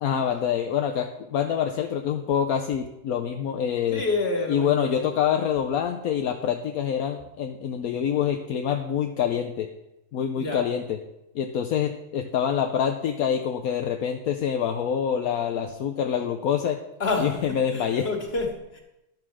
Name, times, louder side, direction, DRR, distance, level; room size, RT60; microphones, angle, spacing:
voice 1, 0.0-4.0 4.5-9.7 10.1-11.0 11.3-16.8 17.2-18.1, left 8 dB, 70° left, 5 dB, 1.2 m, -26 dB
voice 2, 3.9-5.1 10.4-10.7 17.0-18.8, left 3 dB, 40° left, 2 dB, 2.1 m, -29 dB
11.5 x 7.5 x 6.3 m, 0.91 s
omnidirectional pair, 1.6 m